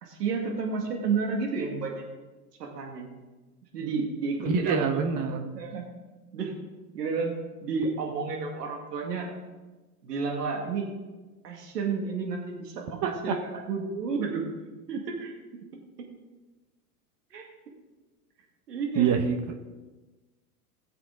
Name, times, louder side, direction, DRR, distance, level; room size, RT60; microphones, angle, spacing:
voice 1, 0.0-2.0 2.6-3.1 3.7-5.0 5.3-5.9 6.3-6.5 6.9-9.3 10.0-10.9 11.4-14.4 14.9-15.3 17.3-17.5 18.7-19.1, right 4 dB, 85° right, 1 dB, 2.4 m, -31 dB
voice 2, 4.5-5.5 13.0-13.1 18.9-19.5, right 6 dB, 40° right, 4 dB, 1.3 m, -25 dB
16.5 x 7.6 x 3.9 m, 1.2 s
hypercardioid pair, 110°, 46 cm